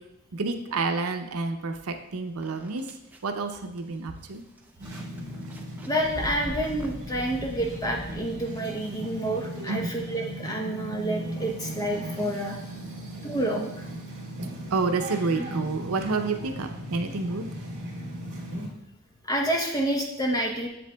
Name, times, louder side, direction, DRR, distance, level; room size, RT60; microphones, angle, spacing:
voice 1, 0.3-2.8 3.2-4.4 9.7-9.9 14.7-17.5, right 3 dB, 85° right, 6 dB, 0.6 m, -29 dB
sound 1, 2.4-8.8, right 1 dB, 10° right, 0.4 m, -42 dB
sound 2, 4.8-18.7, equal, 45° right, 2.5 m, -37 dB
voice 2, 5.8-12.6 13.2-13.9 19.3-20.7, right 1 dB, 15° left, 0 dB, 0.8 m, -28 dB
7.7 x 7.5 x 2.3 m, 0.86 s
head